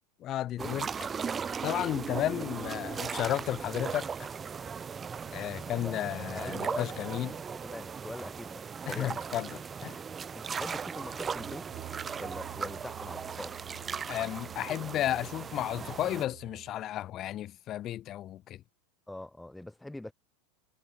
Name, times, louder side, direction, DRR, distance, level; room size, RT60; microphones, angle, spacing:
voice 1, 0.2-0.9 1.6-4.1 5.3-7.3 8.9-10.0 14.1-18.6, left 13 dB, 40° left, 0.5 m, -33 dB
sound 1, 0.6-16.3, right 6 dB, 25° right, 0.4 m, -38 dB
voice 2, 5.7-6.9 7.3-9.2 10.3-11.7 12.2-13.6 19.1-20.1, left 1 dB, 5° left, 0.8 m, -43 dB
sound 2, 10.4-16.7, right 40 dB or more, 60° right, 1.6 m, -50 dB
hypercardioid pair, 100°, 0 cm